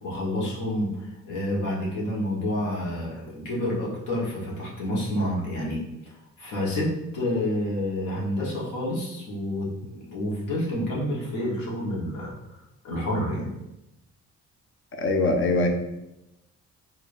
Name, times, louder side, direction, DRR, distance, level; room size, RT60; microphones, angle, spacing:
voice 1, 0.0-0.9 1.2-5.8 6.4-12.3 12.8-13.5, left 1 dB, 80° left, -4 dB, 1.3 m, -28 dB
voice 2, 15.0-15.7, left 2 dB, 45° left, 4 dB, 0.6 m, -22 dB
4.8 x 2.8 x 2.6 m, 0.91 s
cardioid pair, 90°, 30 cm